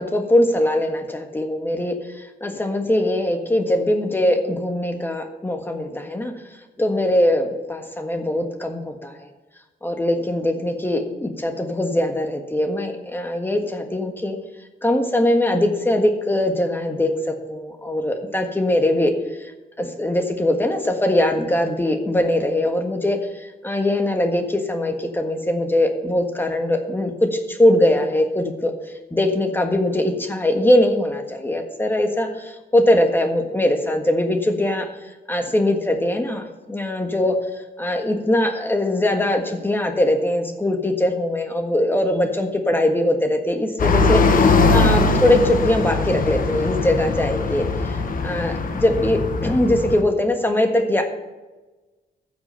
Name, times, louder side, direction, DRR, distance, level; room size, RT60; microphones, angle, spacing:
voice 1, 0.0-6.3 6.8-9.1 9.8-14.4 14.8-19.1 19.4-19.5 19.8-28.7 29.1-34.9 35.3-37.3 37.8-51.1, left 1 dB, 15° left, 4 dB, 1.5 m, -21 dB
sound 1, 43.8-50.0, left 3 dB, 55° left, 1.2 m, -20 dB
15.0 x 6.1 x 5.6 m, 1.2 s
wide cardioid pair, 130°, 17 cm